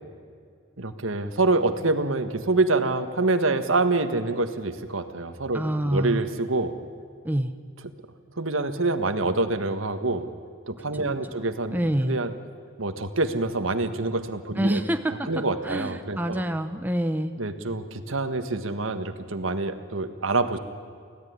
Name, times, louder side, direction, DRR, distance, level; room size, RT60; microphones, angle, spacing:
voice 1, 0.8-6.7 8.4-10.3 10.7-11.8 12.0-12.3 12.8-14.8 15.3-16.4 17.4-20.6, right 3 dB, 80° right, 9 dB, 1.6 m, -26 dB
voice 2, 5.5-6.2 7.2-7.5 10.9-11.4 11.7-12.2 14.6-17.3, right 1 dB, 10° right, 7 dB, 0.8 m, -27 dB
24.5 x 17.0 x 9.6 m, 2.2 s
head